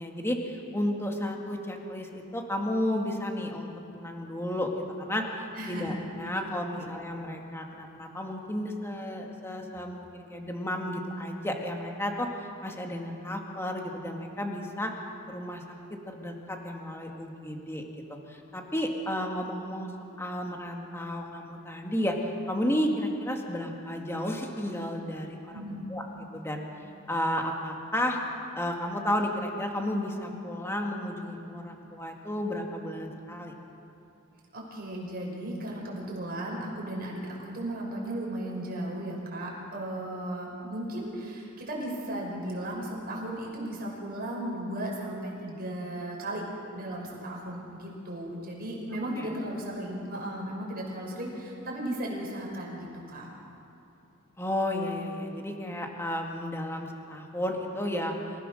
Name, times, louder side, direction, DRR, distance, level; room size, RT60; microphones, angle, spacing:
voice 1, 0.0-12.3 12.6-14.9 15.3-15.6 15.9-17.8 18.1-19.9 20.2-22.2 22.5-26.0 26.3-26.6 27.1-28.2 28.6-33.5 49.2-49.3 54.4-58.1, left 1 dB, 10° left, 1 dB, 2.1 m, -32 dB
voice 2, 5.5-6.0 6.8-6.9 25.5-25.8 34.5-46.4 46.7-53.3, right 1 dB, 45° right, -2 dB, 6.1 m, -35 dB
28.0 x 17.0 x 6.5 m, 2.8 s
head